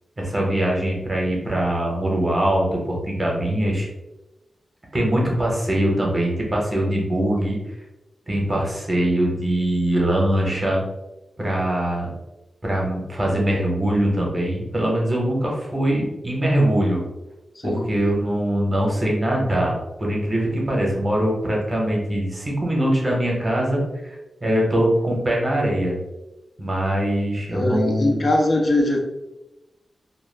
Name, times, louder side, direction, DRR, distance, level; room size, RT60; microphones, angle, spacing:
voice 1, 0.2-3.9 4.9-7.6 8.3-10.8 11.4-12.1 12.6-17.0 17.6-24.2 24.4-25.9 26.6-28.2, right 1 dB, 25° right, -2 dB, 0.7 m, -22 dB
voice 2, 27.5-29.0, left 1 dB, 40° left, 0 dB, 0.3 m, -21 dB
2.2 x 2.0 x 3.2 m, 0.98 s
wide cardioid pair, 125°, 0 cm